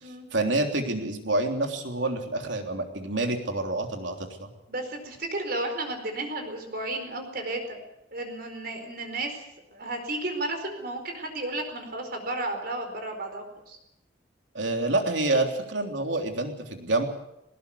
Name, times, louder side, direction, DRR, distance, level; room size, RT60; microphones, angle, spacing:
voice 1, 0.0-4.5 14.5-17.1, right 2 dB, 80° right, 4 dB, 3.4 m, -28 dB
voice 2, 4.7-7.8 8.1-9.4 9.7-13.8, right 2 dB, 55° right, 5 dB, 4.6 m, -33 dB
20.0 x 19.0 x 8.3 m, 0.88 s
head